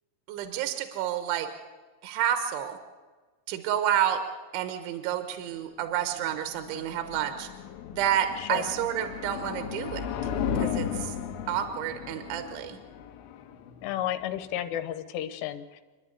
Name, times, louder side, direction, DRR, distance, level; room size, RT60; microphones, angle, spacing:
voice 1, 0.3-1.5 2.0-2.8 3.5-4.2 4.5-7.5 7.9-10.1 10.6-11.1 11.5-12.8, right 10 dB, 75° right, 8 dB, 3.4 m, -29 dB
sound 1, 5.9-14.9, left 8 dB, 70° left, 2.4 m, -35 dB
voice 2, 13.8-15.8, left 11 dB, 85° left, 10 dB, 3.4 m, -32 dB
27.5 x 10.5 x 9.7 m, 1.3 s
omnidirectional pair, 5.7 m